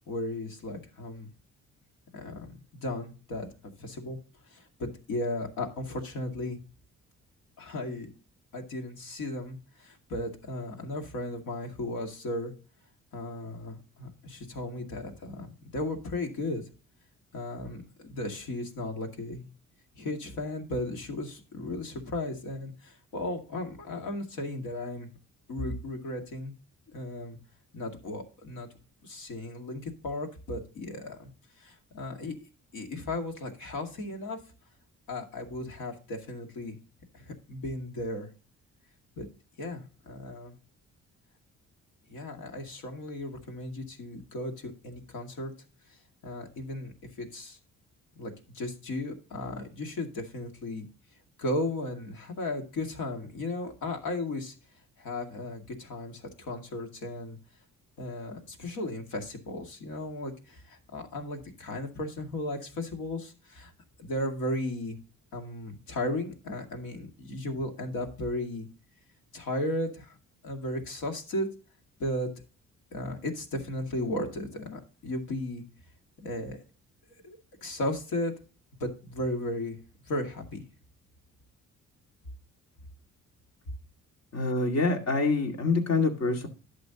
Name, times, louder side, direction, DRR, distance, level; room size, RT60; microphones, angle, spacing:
voice 1, 0.1-1.3 2.1-3.5 3.8-4.2 4.5-6.6 7.6-8.1 8.5-12.5 13.1-16.6 17.3-19.5 20.0-25.1 25.5-26.5 26.9-27.4 27.7-28.7 29.0-31.3 31.6-32.4 32.7-34.4 35.1-36.8 37.1-38.3 39.2-39.3 39.6-40.5 42.1-45.5 46.2-47.6 48.2-50.9 51.4-54.5 55.0-57.4 58.0-63.7 64.0-65.0 65.3-68.7 69.3-70.2 70.4-71.5 72.0-72.3 72.9-75.6 76.2-76.6 77.2-78.3 78.8-79.8 80.1-80.7, left 1 dB, 80° left, 2.2 m, -35 dB
voice 2, 84.3-86.5, left 3 dB, 60° left, 2.1 m, -26 dB
11.5 x 7.7 x 2.9 m
cardioid pair, 90°, 30 cm